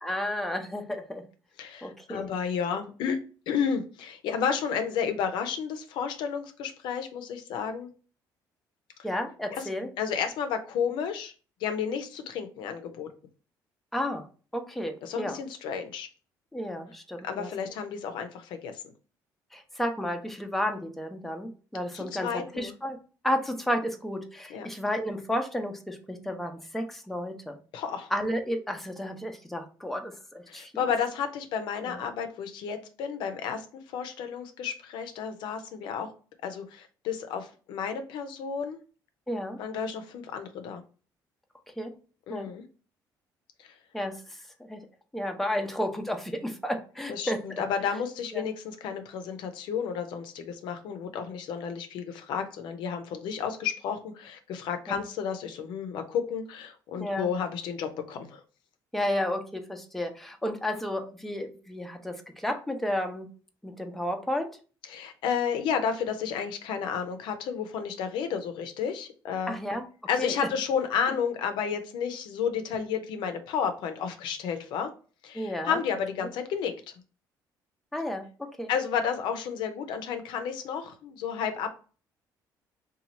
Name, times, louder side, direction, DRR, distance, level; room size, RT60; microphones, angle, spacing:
voice 1, 0.0-1.2 1.8-2.3 9.0-9.9 13.9-14.3 14.5-15.4 16.5-17.5 19.5-23.0 23.2-27.6 28.1-30.8 31.8-32.0 39.3-39.6 41.8-41.9 42.3-42.5 43.9-44.8 45.1-47.6 48.3-48.4 54.9-55.0 57.0-57.3 58.9-63.3 63.6-64.5 69.5-69.8 70.2-70.3 75.3-75.8 76.2-76.3 77.9-78.7, left 1 dB, 5° left, 4 dB, 0.6 m, -32 dB
voice 2, 1.6-3.2 3.5-7.9 9.5-9.7 10.0-11.3 11.6-13.1 15.0-16.1 17.2-18.7 21.9-22.7 24.5-24.7 27.7-28.1 30.5-33.7 33.9-36.1 36.4-38.8 39.6-40.8 42.3-42.6 43.6-43.7 47.1-58.4 64.9-69.6 70.1-74.9 75.2-76.7 78.7-81.7, left 7 dB, 80° left, 7 dB, 0.5 m, -32 dB
2.9 x 2.3 x 4.1 m, 0.37 s
cardioid pair, 100°, 8 cm